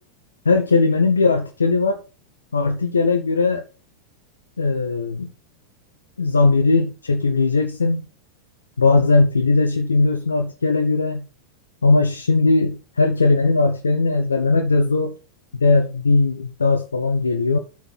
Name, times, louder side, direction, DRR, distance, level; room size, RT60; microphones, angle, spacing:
voice 1, 0.4-2.0 2.5-3.6 4.6-5.3 6.2-8.0 8.8-11.3 11.8-15.1 15.5-17.6, left 3 dB, 75° left, 5 dB, 1.0 m, -19 dB
7.0 x 6.2 x 7.2 m, 0.34 s
figure-of-eight pair, 90°, 0 cm